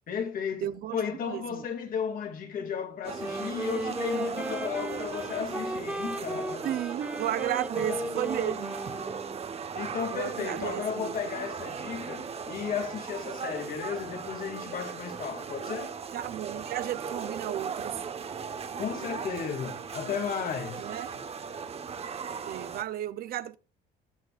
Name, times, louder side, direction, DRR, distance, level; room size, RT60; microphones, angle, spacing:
voice 1, 0.1-6.7 7.8-8.0 9.7-16.0 18.7-20.9, left 7 dB, 55° left, 2.5 m, -34 dB
voice 2, 0.6-1.6 6.6-8.8 10.1-11.1 16.1-18.0 20.8-21.2 22.5-23.6, right 12 dB, 65° right, 0.7 m, -34 dB
Wind instrument woodwind instrument, 3.0-9.6, right 1 dB, 5° right, 2.1 m, -35 dB
sound 1, 3.0-22.8, right 6 dB, 35° right, 1.2 m, -38 dB
19.5 x 8.0 x 2.5 m
cardioid pair, 110°, 17 cm